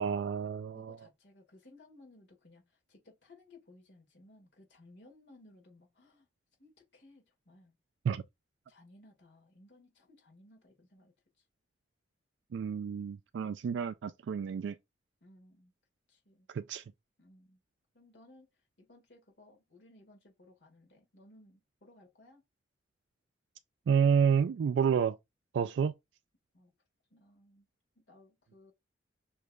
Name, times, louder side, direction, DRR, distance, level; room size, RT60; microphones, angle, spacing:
voice 1, 0.0-1.0 8.1-8.2 12.5-14.7 16.5-16.8 23.9-25.2 25.5-25.9, right 7 dB, 85° right, 0.3 m, -29 dB
voice 2, 0.7-6.3 6.6-7.8 8.7-11.5 15.2-15.7 16.1-16.5 17.2-17.6 17.9-22.4 26.5-26.7 27.1-27.7 28.0-28.7, left 2 dB, 75° left, 1.9 m, -60 dB
6.3 x 3.2 x 2.3 m
head